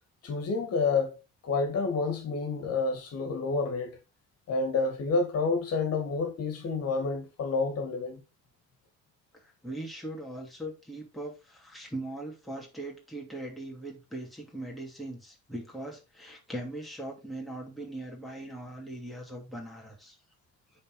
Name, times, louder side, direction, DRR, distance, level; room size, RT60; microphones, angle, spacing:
voice 1, 0.2-1.1 1.4-3.9 4.5-8.2, left 4 dB, 55° left, 2.1 m, -29 dB
voice 2, 9.3-20.2, right 1 dB, ahead, 2.7 m, -40 dB
8.9 x 4.3 x 4.9 m
cardioid pair, 135°, 30 cm